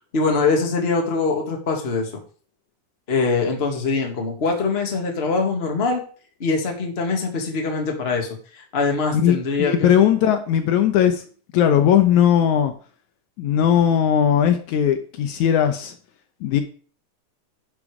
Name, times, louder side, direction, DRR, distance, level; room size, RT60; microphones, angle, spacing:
voice 1, 0.1-2.1 3.1-6.0 6.4-9.9, left 4 dB, 25° left, 2 dB, 1.7 m, -23 dB
voice 2, 9.1-11.2 11.5-12.7 13.4-15.9 16.4-16.6, left 9 dB, 75° left, 7 dB, 2.2 m, -18 dB
11.0 x 7.0 x 4.9 m, 0.42 s
omnidirectional pair, 3.7 m